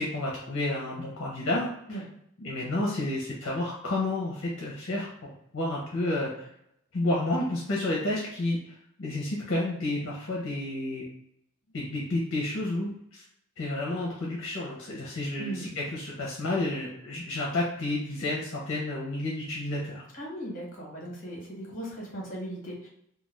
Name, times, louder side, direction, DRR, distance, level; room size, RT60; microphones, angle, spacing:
voice 1, 0.0-1.7 2.4-6.3 6.9-8.6 9.0-11.0 11.7-13.2 13.6-20.0, left 2 dB, 70° left, -4 dB, 0.6 m, -30 dB
voice 2, 15.4-15.7 20.1-22.9, right 1 dB, 40° left, -3 dB, 1.1 m, -38 dB
2.4 x 2.3 x 3.2 m, 0.75 s
head